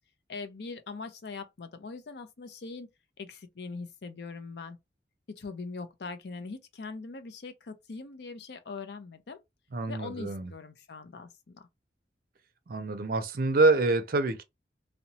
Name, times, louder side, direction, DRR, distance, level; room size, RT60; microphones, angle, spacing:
voice 1, 0.3-2.9 3.2-4.8 5.3-9.4 9.9-11.7, left 4 dB, 65° left, 0.5 m, -41 dB
voice 2, 9.7-10.5 12.7-14.4, right 3 dB, 55° right, 0.5 m, -26 dB
2.8 x 2.0 x 2.7 m
head